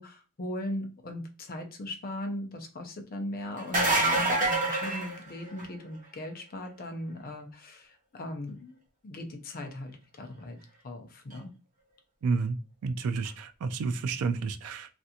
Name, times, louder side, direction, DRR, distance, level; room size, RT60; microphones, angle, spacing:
voice 1, 0.0-8.8 9.0-10.6 10.8-11.5, left 1 dB, 40° left, 5 dB, 0.6 m, -38 dB
sound 1, 3.6-5.8 11.3-11.4 13.2-13.3, right 2 dB, 35° right, 1.0 m, -26 dB
voice 2, 12.2-12.6 12.8-14.9, right 4 dB, 70° right, 9 dB, 0.3 m, -30 dB
3.3 x 2.5 x 2.7 m, 0.32 s
head